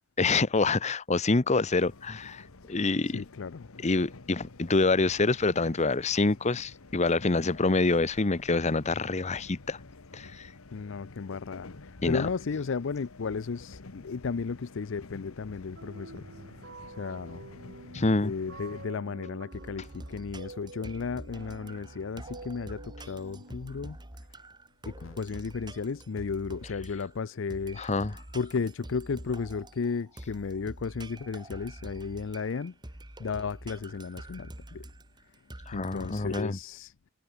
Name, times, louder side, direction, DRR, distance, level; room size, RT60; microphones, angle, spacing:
voice 1, 0.0-3.2 3.8-9.8 10.1-10.5 12.0-12.3 17.9-18.3 27.8-28.1 35.7-36.6, left 3 dB, 30° left, 0.8 m, -26 dB
sound 1, 1.7-18.9, left 3 dB, 85° left, 1.3 m, -50 dB
voice 2, 3.1-3.7 10.7-16.3 16.9-17.5 18.2-24.0 24.8-27.8 28.3-32.7 33.2-34.9 35.7-36.9, left 5 dB, 60° left, 0.5 m, -34 dB
sound 2, 15.8-24.2, right 3 dB, 55° right, 1.6 m, -48 dB
sound 3, 19.5-36.4, right 1 dB, 20° right, 1.8 m, -46 dB
head